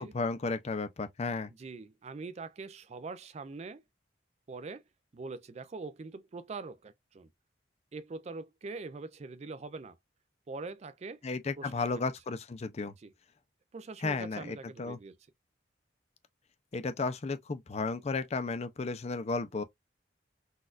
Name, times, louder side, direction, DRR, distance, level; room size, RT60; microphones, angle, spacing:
voice 1, 0.1-1.5 11.2-12.9 14.0-15.0 16.7-19.6, left 3 dB, 35° left, 0.4 m, -33 dB
voice 2, 1.5-3.8 4.5-4.8 5.1-7.3 7.9-10.0 10.5-11.2 11.6-12.0 13.0-13.1 13.7-15.2, right 3 dB, 35° right, 0.4 m, -43 dB
4.1 x 2.4 x 2.4 m
head